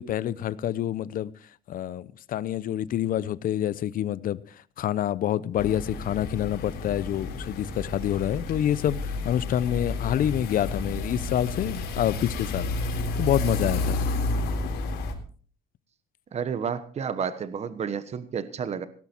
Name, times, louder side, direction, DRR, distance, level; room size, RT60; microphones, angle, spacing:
voice 1, 0.0-1.3 1.7-4.4 4.8-12.7 13.2-14.0, left 11 dB, 55° left, 0.7 m, -27 dB
sound 1, 5.6-15.1, left 2 dB, 80° left, 3.7 m, -31 dB
voice 2, 16.3-18.9, right 7 dB, 40° right, 1.1 m, -31 dB
17.0 x 12.0 x 4.5 m
cardioid pair, 110°, 17 cm